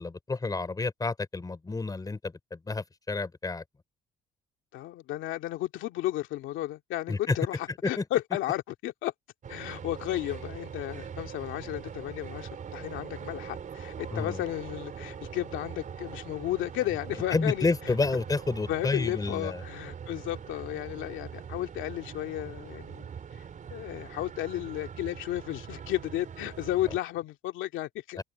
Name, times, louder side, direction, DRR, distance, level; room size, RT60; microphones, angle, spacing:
voice 1, 0.0-3.6 7.1-7.4 7.8-8.0 14.1-14.4 17.3-19.6 28.2-28.3, left 3 dB, 20° left, 3.9 m, -30 dB
voice 2, 4.7-9.1 9.5-17.9 18.7-23.1 23.7-28.2, left 14 dB, 85° left, 2.2 m, -33 dB
sound 1, 9.4-27.0, right 7 dB, 40° right, 4.1 m, -42 dB
cardioid pair, 120°, 20 cm